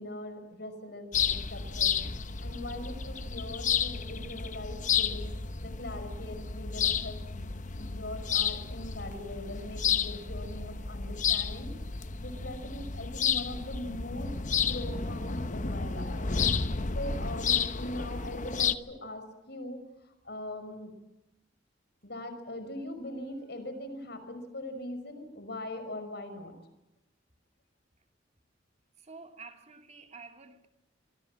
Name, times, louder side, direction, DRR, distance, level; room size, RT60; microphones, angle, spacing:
voice 1, 0.0-2.0 2.4-5.3 5.6-11.7 12.2-14.3 14.7-16.3 16.9-20.9 22.0-26.5, left 1 dB, 60° left, 5.7 m, -41 dB
sound 1, 1.1-18.8, left 6 dB, 40° left, 1.0 m, -31 dB
voice 2, 29.0-30.7, right 4 dB, 35° right, 2.4 m, -49 dB
26.0 x 24.5 x 7.5 m
head